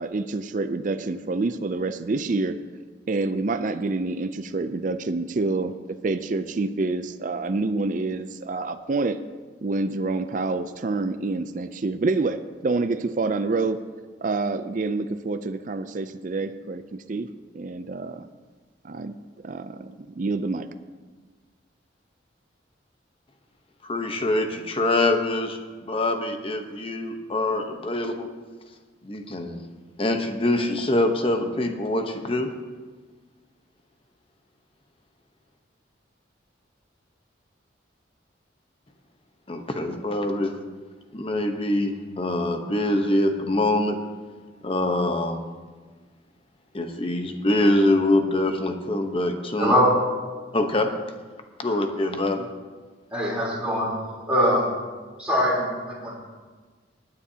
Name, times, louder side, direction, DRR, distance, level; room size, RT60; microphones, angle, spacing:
voice 1, 0.0-2.6 3.1-5.7 6.0-9.2 9.6-13.8 14.2-17.3 17.5-18.3 18.8-19.1 19.4-20.7, right 3 dB, 45° right, 10 dB, 0.4 m, -27 dB
voice 2, 23.8-28.3 29.0-29.6 30.0-32.5 39.5-40.6 41.1-44.0 44.6-45.5 46.7-49.7 50.5-50.9 51.6-52.5, left 1 dB, 30° left, 5 dB, 1.0 m, -24 dB
voice 3, 49.6-49.9 51.7-51.8 53.1-53.9 54.3-54.7 55.2-56.2, equal, 5° right, -7 dB, 3.5 m, -22 dB
19.5 x 9.8 x 2.8 m, 1.4 s
head